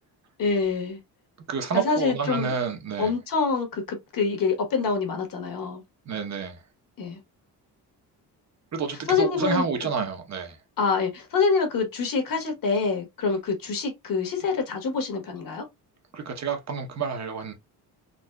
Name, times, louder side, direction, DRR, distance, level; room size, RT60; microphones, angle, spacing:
voice 1, 0.4-1.0 1.7-2.5 3.0-5.8 7.0-7.2 9.1-9.6 10.8-15.6, left 4 dB, 55° left, 1.4 m, -26 dB
voice 2, 1.5-3.1 6.1-6.6 8.7-10.6 16.1-17.5, right 5 dB, 45° right, 0.9 m, -29 dB
4.0 x 2.7 x 2.3 m
cardioid pair, 110°, 39 cm